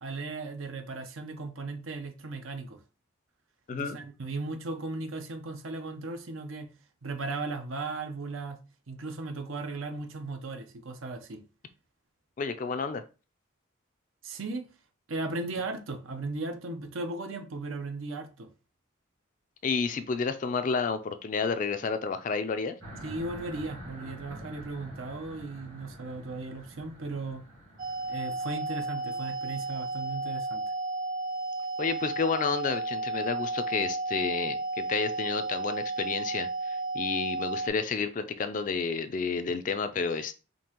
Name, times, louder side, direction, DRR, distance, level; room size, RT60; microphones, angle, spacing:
voice 1, 0.0-2.8 3.7-6.7 7.0-8.6 8.9-11.4 14.2-14.7 15.1-18.5 23.0-27.4 28.1-30.7, right 3 dB, 85° right, 0.7 m, -36 dB
voice 2, 12.4-13.0 19.6-22.8 31.8-40.3, left 5 dB, 40° left, 0.3 m, -30 dB
sound 1, 22.8-30.3, equal, 70° right, 2.5 m, -48 dB
sound 2, 27.8-37.7, right 2 dB, 40° right, 0.5 m, -33 dB
5.2 x 2.8 x 2.8 m
head